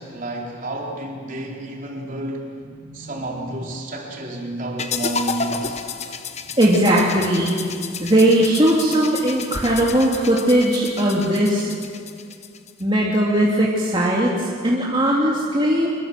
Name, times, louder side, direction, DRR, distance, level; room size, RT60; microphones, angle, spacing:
voice 1, 0.0-2.5 2.9-5.8, right 1 dB, 45° right, -1 dB, 4.1 m, -30 dB
voice 2, 2.7-3.1 6.6-7.6 8.0-11.7 12.8-15.9, right 1 dB, 25° right, -4 dB, 2.7 m, -19 dB
sound 1, 4.8-12.8, left 5 dB, 35° left, 1.1 m, -31 dB
24.5 x 22.5 x 7.5 m, 2.4 s
head